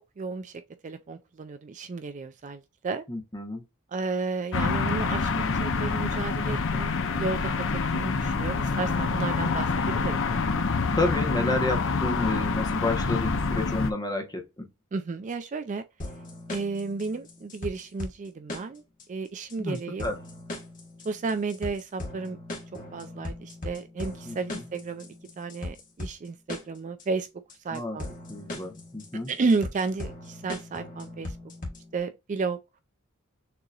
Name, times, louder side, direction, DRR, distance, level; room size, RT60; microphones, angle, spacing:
voice 1, 0.2-3.0 3.9-7.5 7.9-10.2 14.9-15.8 16.5-18.8 19.1-20.1 21.0-22.4 22.9-25.1 25.4-27.3 27.6-28.1 29.3-31.4 31.9-32.6, right 4 dB, 35° right, 0.3 m, -32 dB
voice 2, 3.1-3.6 11.0-14.7 19.6-20.2 24.3-24.6 27.7-28.0 28.3-29.3, left 2 dB, 20° left, 1.0 m, -30 dB
sound 1, 4.5-13.9, left 4 dB, 60° left, 0.7 m, -27 dB
sound 2, 16.0-32.0, left 1 dB, 35° left, 1.4 m, -39 dB
6.7 x 2.9 x 2.4 m
head